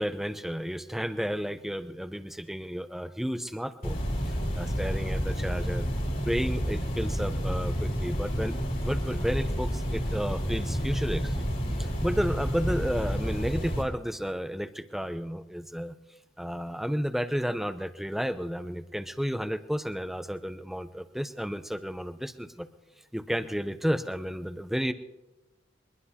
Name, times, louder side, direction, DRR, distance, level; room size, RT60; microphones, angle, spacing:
voice 1, 0.0-5.9 6.2-8.6 8.8-11.4 11.8-15.9 16.4-22.7 23.1-24.9, equal, ahead, 10 dB, 0.6 m, -32 dB
sound 1, 3.8-13.8, equal, 45° left, 2.9 m, -30 dB
23.0 x 21.0 x 2.8 m, 1.1 s
head